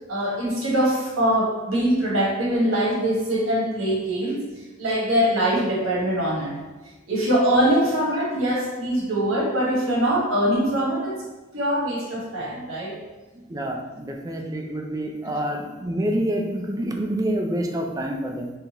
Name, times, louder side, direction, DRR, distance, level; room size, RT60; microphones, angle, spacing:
voice 1, 0.1-4.4 4.8-6.5 7.1-11.2 11.5-13.0 14.5-14.6, right 1 dB, 90° right, -4 dB, 1.4 m, -23 dB
voice 2, 13.3-18.5, right 1 dB, 15° right, 2 dB, 0.4 m, -27 dB
3.7 x 3.2 x 2.9 m, 1.1 s
head